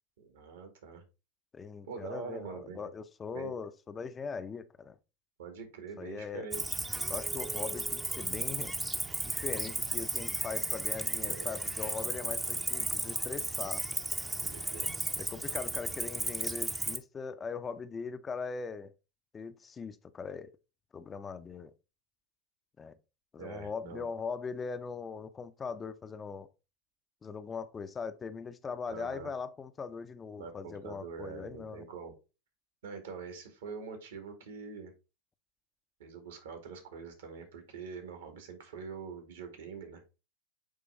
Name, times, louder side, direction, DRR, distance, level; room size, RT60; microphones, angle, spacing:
voice 1, 0.2-1.0 1.8-2.9 3.3-3.5 5.4-6.8 11.2-11.6 14.4-14.9 23.4-24.1 28.9-29.3 30.4-32.1 32.8-34.9 36.0-40.0, right 5 dB, 70° right, 2.2 m, -44 dB
voice 2, 1.5-5.0 6.0-6.5 7.1-8.7 9.3-13.9 15.2-18.9 19.3-20.6 20.9-21.7 22.8-22.9 23.3-26.5 27.2-31.9, left 5 dB, 20° left, 0.7 m, -40 dB
Cricket, 6.5-17.0, right 2 dB, 10° right, 0.8 m, -34 dB
8.7 x 3.2 x 4.0 m
hypercardioid pair, 95°, 0 cm